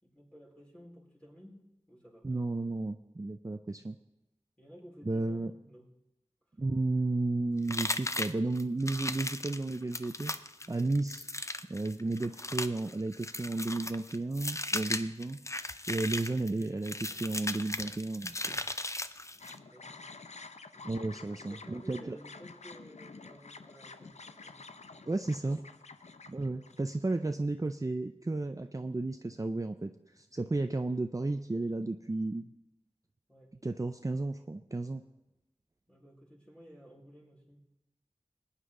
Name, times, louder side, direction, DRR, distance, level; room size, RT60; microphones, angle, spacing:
voice 1, 0.0-2.5 3.7-4.0 4.6-5.9 19.3-20.1 20.7-25.6 33.3-33.7 35.9-37.7, equal, 10° left, -3 dB, 4.5 m, -55 dB
voice 2, 2.2-4.0 5.0-5.5 6.6-10.3 10.7-11.3 11.7-15.4 15.9-18.6 20.8-22.2 25.1-25.6 26.3-32.5 33.6-35.0, right 2 dB, 30° right, 7 dB, 0.5 m, -33 dB
sound 1, 7.7-19.6, left 2 dB, 25° left, 0.6 m, -37 dB
sound 2, 19.4-27.3, left 4 dB, 90° left, 0.7 m, -50 dB
21.0 x 9.8 x 3.8 m, 0.96 s
wide cardioid pair, 45°, 11 cm